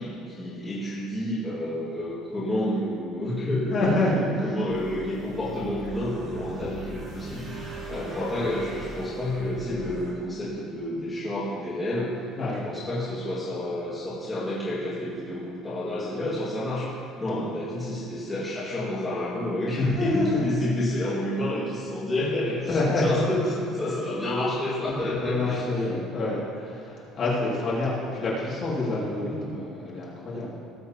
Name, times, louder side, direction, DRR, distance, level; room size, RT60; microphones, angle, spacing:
voice 1, 0.0-12.1 12.6-16.9 17.2-25.6, left 1 dB, 15° left, -10 dB, 2.1 m, -29 dB
voice 2, 3.7-4.6 12.4-12.6 17.2-17.4 19.8-20.6 22.7-23.0 24.8-30.6, left 2 dB, 35° left, -6 dB, 2.4 m, -27 dB
sound 1, 4.7-10.1, right 1 dB, 35° right, 2.2 m, -39 dB
18.0 x 7.9 x 2.9 m, 2.6 s
cardioid pair, 175°, 0 cm